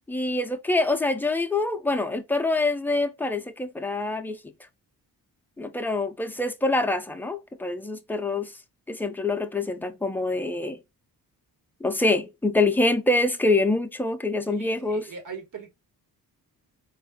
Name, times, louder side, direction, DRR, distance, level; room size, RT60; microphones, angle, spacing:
voice 1, 0.1-4.4 5.6-8.5 8.9-10.8 11.8-15.1, left 2 dB, 5° left, 0.4 m, -25 dB
voice 2, 14.5-15.7, right 6 dB, 60° right, 1.4 m, -40 dB
4.5 x 2.5 x 3.5 m
wide cardioid pair, 170°, 37 cm